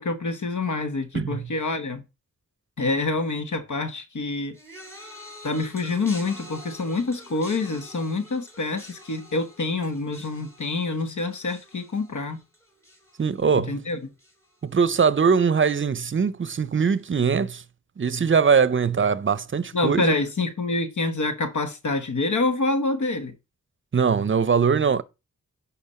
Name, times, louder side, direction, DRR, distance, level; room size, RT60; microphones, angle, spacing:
voice 1, 0.0-2.0 2.8-4.5 5.4-12.4 13.5-14.0 19.7-23.3, left 3 dB, 65° left, 1.2 m, -26 dB
voice 2, 1.1-1.5 13.2-13.8 14.6-17.6 18.0-20.1 23.9-25.0, right 6 dB, 40° right, 0.6 m, -21 dB
sound 1, 4.5-13.9 14.2-14.7 15.6-15.7, left 1 dB, 10° left, 2.8 m, -46 dB
11.0 x 4.3 x 4.3 m
cardioid pair, 55°, 32 cm